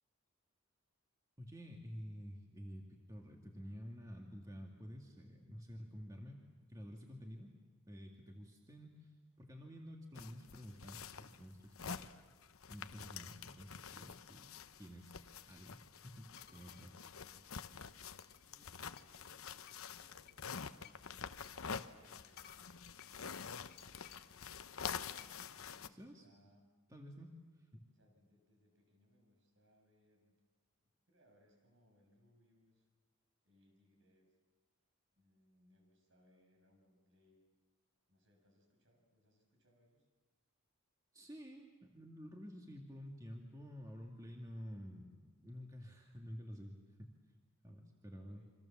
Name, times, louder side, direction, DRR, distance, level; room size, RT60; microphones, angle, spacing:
voice 1, 1.4-7.5 7.9-12.1 12.7-14.5 14.8-16.9 25.9-26.3 26.9-27.3 27.6-27.9 41.1-47.1 47.6-48.4, equal, 15° right, 0 dB, 2.1 m, -51 dB
sound 1, 10.1-25.9, left 6 dB, 80° left, 0.9 m, -48 dB
sound 2, 16.4-16.9 17.9-19.3 19.6-24.4 25.1-25.5, left 9 dB, 45° left, 1.8 m, -62 dB
voice 2, 16.4-21.0 21.5-24.9 25.5-26.7 27.9-30.4 30.8-32.9 33.4-34.4 35.1-37.4 38.1-40.1 48.1-48.5, left 1 dB, 60° right, 3 dB, 6.8 m, -72 dB
28.5 x 25.5 x 7.4 m, 1.4 s
head